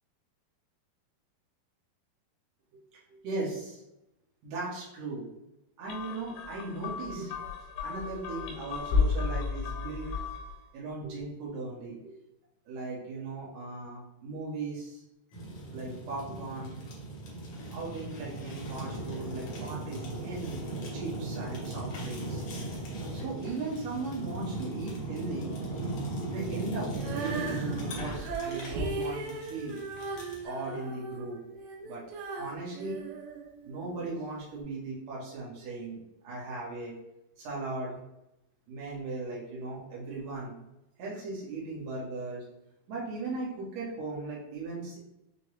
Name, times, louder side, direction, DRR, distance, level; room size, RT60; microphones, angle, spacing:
voice 1, 3.1-3.8 4.4-5.3 5.8-7.3 7.8-10.2 10.7-12.1 12.7-15.0 15.7-16.8 17.7-20.6 20.9-22.4 23.1-25.5 26.2-29.8 30.4-31.4 31.8-32.0 32.3-33.0 33.6-36.0 36.2-36.9 37.4-38.0 38.7-40.6 41.0-42.4 42.9-45.0, right 3 dB, 65° right, -5 dB, 1.8 m, -38 dB
sound 1, 5.9-10.6, left 5 dB, 85° left, 2.5 m, -32 dB
Fire, 15.3-30.5, right 2 dB, 65° left, 1.8 m, -38 dB
Female singing, 26.9-34.0 34.6-34.7, right 4 dB, 85° right, 2.5 m, -38 dB
6.3 x 2.2 x 3.1 m, 0.89 s
omnidirectional pair, 4.6 m